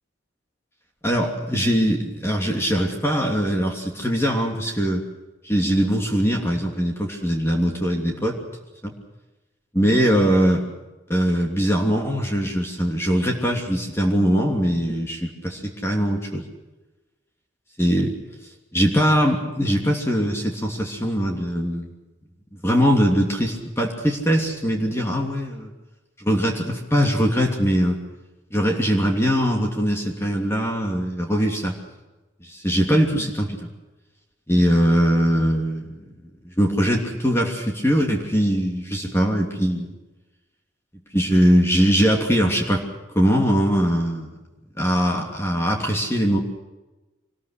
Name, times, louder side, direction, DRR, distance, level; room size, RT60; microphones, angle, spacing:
voice 1, 1.0-5.0 5.4-8.4 8.8-8.9 9.7-10.7 11.1-16.4 17.8-18.2 18.7-21.9 22.6-25.7 26.2-28.0 28.5-31.7 32.4-33.7 34.5-36.0 36.4-39.9 41.1-42.9 43.1-44.3 44.8-46.4, equal, 15° left, 1 dB, 3.0 m, -21 dB
26.0 x 20.5 x 6.6 m, 1.1 s
head